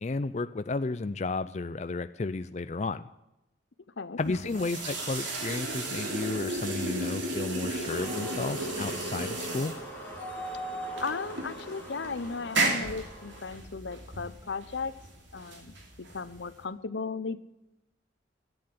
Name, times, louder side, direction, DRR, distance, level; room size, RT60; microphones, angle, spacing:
voice 1, 0.0-3.0 4.2-9.7, left 3 dB, 35° left, 11 dB, 0.4 m, -33 dB
voice 2, 4.0-4.7 11.0-14.9 15.3-15.7 16.0-17.4, left 4 dB, 70° left, 15 dB, 0.7 m, -36 dB
sound 1, 4.2-16.6, right 2 dB, 75° right, 3.1 m, -34 dB
sound 2, 7.9-13.4, right 1 dB, 10° left, 2.5 m, -41 dB
14.0 x 8.8 x 7.7 m, 0.93 s
head